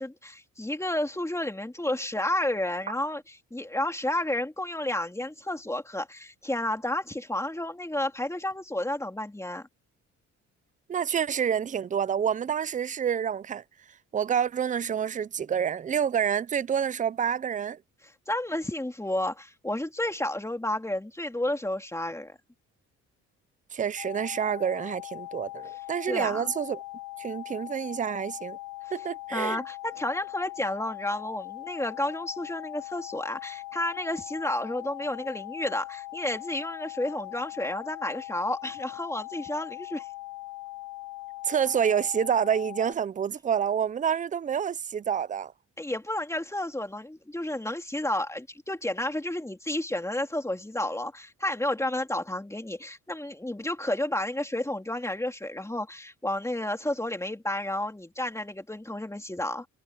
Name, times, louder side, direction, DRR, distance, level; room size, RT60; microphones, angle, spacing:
voice 1, 0.0-9.7 18.3-22.4 26.1-26.5 29.3-40.1 45.8-59.7, left 1 dB, 10° left, 3.3 m, -31 dB
voice 2, 10.9-13.6 14.1-17.8 23.7-26.8 27.2-28.6 28.9-29.6 41.4-45.5, right 8 dB, 25° right, 0.5 m, -28 dB
sound 1, 24.0-42.9, left 18 dB, 60° left, 2.2 m, -41 dB
cardioid pair, 90°, 30 cm